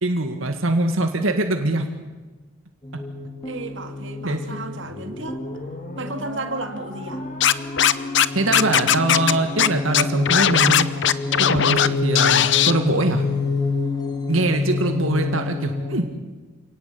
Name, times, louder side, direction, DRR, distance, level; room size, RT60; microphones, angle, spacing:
voice 1, 0.0-1.9 4.2-4.7 8.4-10.9 11.4-13.2 14.3-16.1, right 2 dB, 80° right, 5 dB, 2.0 m, -23 dB
sound 1, 2.8-16.0, left 4 dB, 20° left, 2.2 m, -28 dB
voice 2, 3.4-5.4 6.0-7.3, right 2 dB, 65° right, 6 dB, 2.3 m, -33 dB
sound 2, 4.8-11.3, left 1 dB, 40° left, 2.7 m, -41 dB
Scratching (performance technique), 7.4-8.3 8.5-9.3 9.6-9.7 9.9-11.9 12.2-12.7, left 9 dB, 60° left, 0.8 m, -17 dB
28.5 x 18.5 x 8.6 m, 1.3 s
head